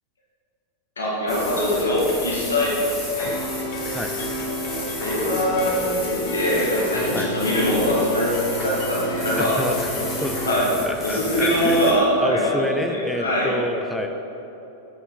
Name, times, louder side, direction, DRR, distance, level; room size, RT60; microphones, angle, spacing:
voice 1, 1.0-3.3 4.5-8.3 8.6-9.5 10.4-10.7 11.0-13.6, equal, 70° left, -6 dB, 1.9 m, -23 dB
sound 1, 1.3-11.9, left 1 dB, 20° left, 2.1 m, -33 dB
sound 2, 3.3-10.6, left 1 dB, 50° left, 1.1 m, -30 dB
voice 2, 9.4-14.1, equal, ahead, 3 dB, 0.6 m, -28 dB
7.7 x 6.2 x 5.8 m, 3.0 s
figure-of-eight pair, 90°, 0 cm